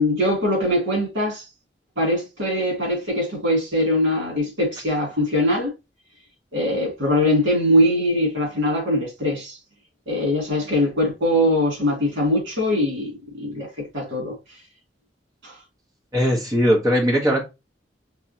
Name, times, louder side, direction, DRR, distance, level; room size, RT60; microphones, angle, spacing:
voice 1, 0.0-1.4 2.0-5.7 6.5-9.6 10.1-14.4 15.4-15.5, left 1 dB, 80° right, 2.7 m, -22 dB
voice 2, 16.1-17.4, equal, 20° right, 1.3 m, -19 dB
4.7 x 3.4 x 2.9 m
head